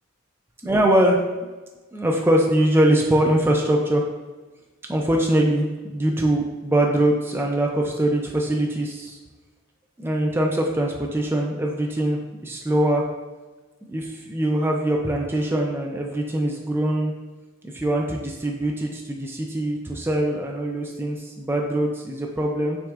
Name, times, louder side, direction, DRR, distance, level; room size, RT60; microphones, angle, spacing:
voice 1, 0.6-1.5 1.9-4.1 4.9-9.2 10.0-13.0 13.9-17.1 17.6-22.8, right 1 dB, 10° right, 0 dB, 0.3 m, -22 dB
6.1 x 3.5 x 2.4 m, 1.2 s
head